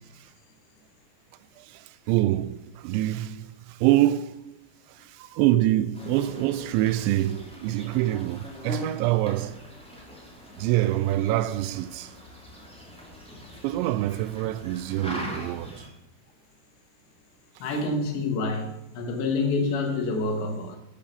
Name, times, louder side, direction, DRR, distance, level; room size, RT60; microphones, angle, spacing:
voice 1, 1.6-4.5 4.9-9.6 10.6-12.1 13.6-15.9, right 15 dB, 85° right, 2.8 m, -25 dB
sound 1, 5.9-15.9, left 1 dB, ahead, 2.1 m, -41 dB
voice 2, 17.6-20.8, left 3 dB, 75° left, 3.7 m, -27 dB
11.5 x 8.8 x 6.8 m
omnidirectional pair, 5.2 m